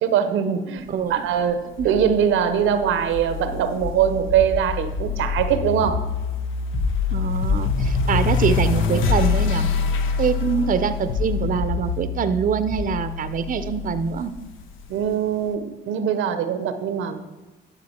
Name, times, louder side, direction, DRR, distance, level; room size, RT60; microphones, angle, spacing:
voice 1, 0.0-6.1 14.9-17.2, right 8 dB, 85° right, 10 dB, 0.8 m, -22 dB
voice 2, 0.9-1.2 1.8-1.9 7.1-9.7 10.2-14.3, right 6 dB, 45° right, 11 dB, 0.6 m, -24 dB
sound 1, 1.8-15.0, left 5 dB, 90° left, 0.8 m, -25 dB
11.0 x 6.2 x 4.3 m, 1.1 s
cardioid pair, 90°, 20 cm